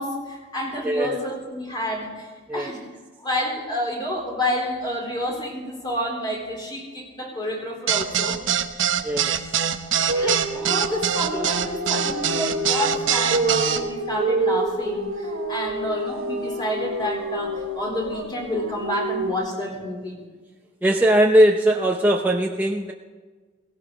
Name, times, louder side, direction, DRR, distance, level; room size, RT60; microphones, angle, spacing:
voice 1, 0.0-2.8 3.2-8.4 10.1-20.3, left 1 dB, 20° left, -1 dB, 3.7 m, -29 dB
voice 2, 0.8-1.2 2.5-2.8 9.0-9.4 10.0-10.1 10.5-10.6 20.8-22.9, right 1 dB, 10° right, 0 dB, 0.7 m, -20 dB
sound 1, 7.9-13.8, right 8 dB, 65° right, 1.0 m, -23 dB
sound 2, 10.1-19.3, right 2 dB, 85° right, 1.2 m, -28 dB
17.5 x 17.0 x 3.9 m, 1.4 s
head